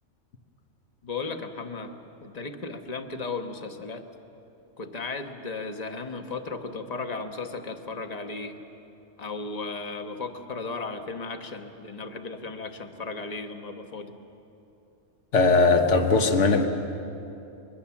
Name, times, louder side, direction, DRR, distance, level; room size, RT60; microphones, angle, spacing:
voice 1, 1.0-4.0 4.8-8.6 9.2-14.1, left 3 dB, 30° left, 6 dB, 1.2 m, -35 dB
voice 2, 15.3-16.7, left 3 dB, 60° left, 6 dB, 1.6 m, -19 dB
24.5 x 21.5 x 7.2 m, 2.8 s
omnidirectional pair, 1.4 m